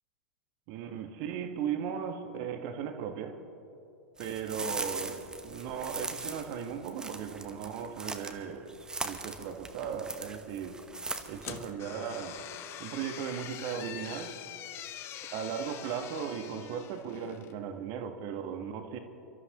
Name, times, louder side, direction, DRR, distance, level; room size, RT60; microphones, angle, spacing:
voice 1, 0.7-3.4 4.2-8.8 9.0-10.8 11.3-12.4 12.8-14.3 15.3-19.0, right 7 dB, 45° right, 6 dB, 1.4 m, -37 dB
sound 1, 4.2-8.4 8.7-11.7, right 3 dB, 10° right, 1.0 m, -40 dB
sound 2, 11.4-17.6, left 11 dB, 30° left, 0.8 m, -44 dB
28.5 x 13.0 x 3.0 m, 2.8 s
figure-of-eight pair, 95°, 8 cm